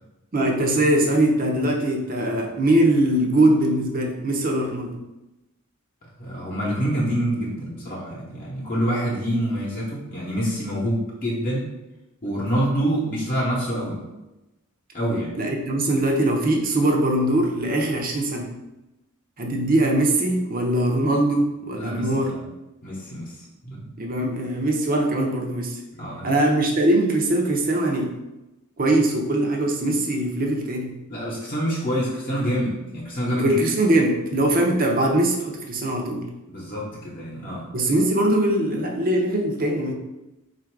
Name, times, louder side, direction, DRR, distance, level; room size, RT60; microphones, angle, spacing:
voice 1, 0.3-5.0 15.4-18.5 19.4-22.3 24.0-25.8 26.2-28.1 28.8-30.9 33.3-36.3 37.7-39.9, right 1 dB, 40° right, 2 dB, 0.6 m, -21 dB
voice 2, 6.2-11.7 12.2-14.0 14.9-15.4 21.8-22.4 22.8-23.3 23.6-23.9 26.0-26.3 31.1-33.6 36.5-37.7, equal, 40° left, -5 dB, 0.9 m, -26 dB
4.0 x 2.5 x 4.5 m, 0.99 s
head